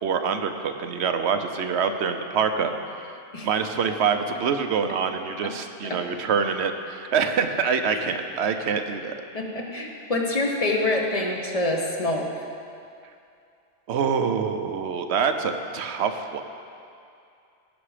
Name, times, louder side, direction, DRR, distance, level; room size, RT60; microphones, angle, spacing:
voice 1, 0.0-2.7 3.4-9.2 13.9-16.4, right 6 dB, 70° right, 7 dB, 1.0 m, -25 dB
voice 2, 9.3-12.3, left 2 dB, 35° left, 1 dB, 1.2 m, -26 dB
17.5 x 6.1 x 5.0 m, 2.5 s
omnidirectional pair, 1.2 m